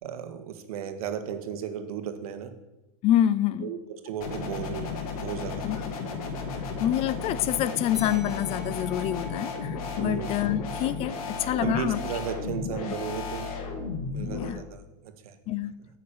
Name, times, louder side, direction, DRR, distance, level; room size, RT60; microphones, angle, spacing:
voice 1, 0.0-2.5 3.6-5.6 10.0-10.3 11.6-13.5 14.1-15.4, right 8 dB, 85° right, 8 dB, 1.7 m, -35 dB
voice 2, 3.0-3.7 5.6-5.8 6.8-12.0 14.3-14.6 15.5-15.7, left 12 dB, 35° left, 17 dB, 0.5 m, -27 dB
sound 1, 4.2-14.5, left 4 dB, 80° left, 2.4 m, -34 dB
sound 2, 7.9-12.9, left 3 dB, ahead, 5.0 m, -48 dB
9.6 x 6.4 x 8.6 m, 0.98 s
supercardioid pair, 150°, 18 cm